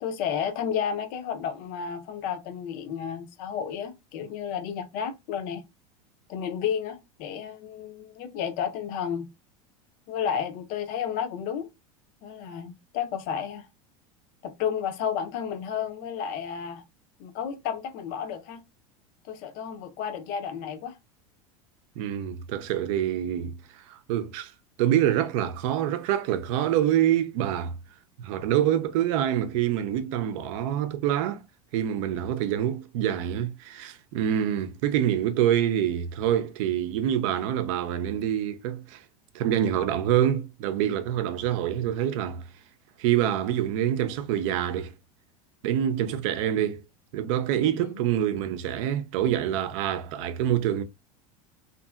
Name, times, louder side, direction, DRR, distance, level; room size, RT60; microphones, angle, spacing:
voice 1, 0.0-5.6 6.3-9.3 10.1-11.7 12.2-13.7 14.4-16.8 17.2-18.6 19.2-21.0 47.6-48.0, left 8 dB, 50° left, 0.6 m, -32 dB
voice 2, 22.0-24.5 24.8-27.7 28.2-31.4 31.7-39.0 39.3-42.4 43.0-44.9 45.6-46.8 47.1-50.8, right 10 dB, 60° right, 0.5 m, -26 dB
2.6 x 2.6 x 2.3 m
hypercardioid pair, 90°, 19 cm